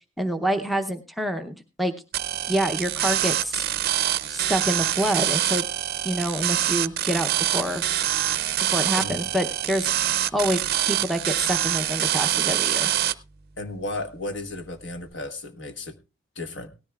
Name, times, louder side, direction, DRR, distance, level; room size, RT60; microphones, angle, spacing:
voice 1, 0.2-1.9 2.5-3.7 4.3-5.6 6.0-7.8 8.6-12.9, equal, ahead, 5 dB, 0.7 m, -27 dB
sound 1, 2.1-13.1, right 12 dB, 50° right, 0.5 m, -25 dB
voice 2, 8.9-9.3 13.6-16.0 16.3-16.7, left 2 dB, 60° left, 8 dB, 1.3 m, -34 dB
18.0 x 13.5 x 2.4 m, 0.30 s
head